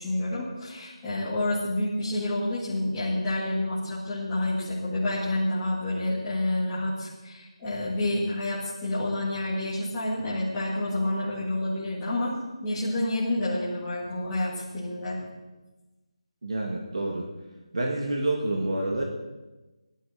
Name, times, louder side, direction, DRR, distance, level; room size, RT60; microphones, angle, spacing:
voice 1, 0.0-12.3 12.6-15.2, left 1 dB, 10° left, -13 dB, 2.0 m, -29 dB
voice 2, 16.4-17.3 17.7-19.0, right 2 dB, 60° right, 0 dB, 2.1 m, -28 dB
19.0 x 12.0 x 4.3 m, 1.1 s
figure-of-eight pair, 180°, 3 cm